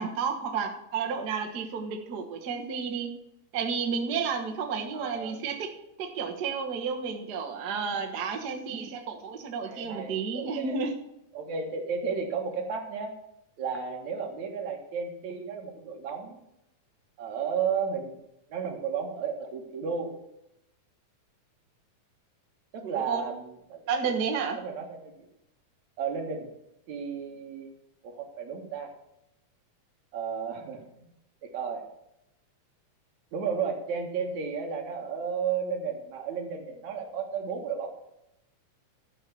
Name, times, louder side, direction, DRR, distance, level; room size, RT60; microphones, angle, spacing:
voice 1, 0.0-3.1 3.5-5.7 6.0-11.0 22.8-23.2 23.9-24.6, right 5 dB, 50° right, 2 dB, 1.2 m, -31 dB
voice 2, 4.9-5.4 9.6-10.8 11.3-13.1 13.6-16.4 17.2-18.2 18.5-20.1 22.7-23.9 24.6-25.3 26.0-26.5 26.9-27.7 28.0-28.9 30.1-31.1 31.4-31.8 33.3-37.9, right 6 dB, 65° right, 3 dB, 2.8 m, -33 dB
12.0 x 5.7 x 6.9 m, 0.84 s
omnidirectional pair, 3.5 m